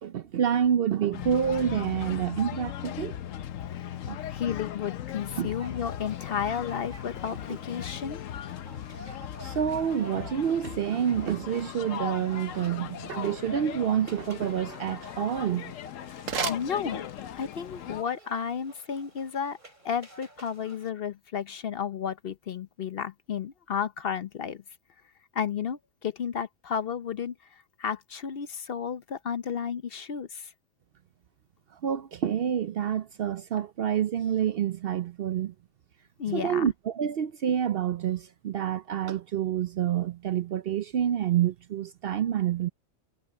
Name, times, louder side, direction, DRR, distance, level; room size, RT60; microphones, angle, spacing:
voice 1, 0.0-3.2 4.1-4.2 5.4-5.5 9.4-15.7 31.7-35.5 36.3-42.7, right 9 dB, 60° right, 0.7 m, -28 dB
sound 1, 1.1-18.0, left 10 dB, 85° left, 1.1 m, -38 dB
voice 2, 3.7-8.2 16.5-17.1 17.4-19.6 19.8-24.6 25.3-30.5 36.2-36.7, left 7 dB, 55° left, 0.8 m, -33 dB
sound 2, 5.2-20.9, right 1 dB, 40° right, 5.3 m, -51 dB
sound 3, 16.1-17.5, right 7 dB, 85° right, 1.4 m, -36 dB
omnidirectional pair, 1.3 m